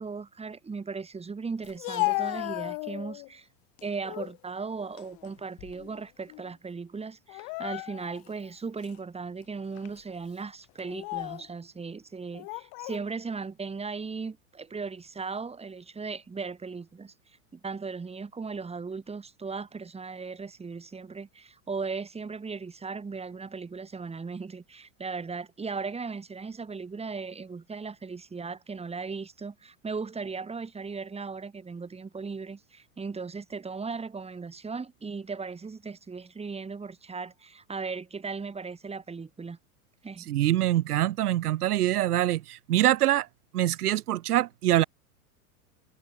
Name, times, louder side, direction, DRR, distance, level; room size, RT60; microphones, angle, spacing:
voice 1, 0.0-3.5 3.8-17.1 17.5-39.6 40.0-40.3, right 4 dB, 15° right, 4.1 m, -37 dB
Speech, 1.6-3.3 3.8-4.4 4.8-6.0 6.3-6.5 7.3-8.3 8.8-9.0 9.8-10.0 10.8-11.5 12.3-13.0, left 31 dB, 50° left, 2.9 m, -34 dB
voice 2, 40.3-43.3 43.5-44.8, right 14 dB, 85° right, 2.6 m, -24 dB
supercardioid pair, 120°, 45 cm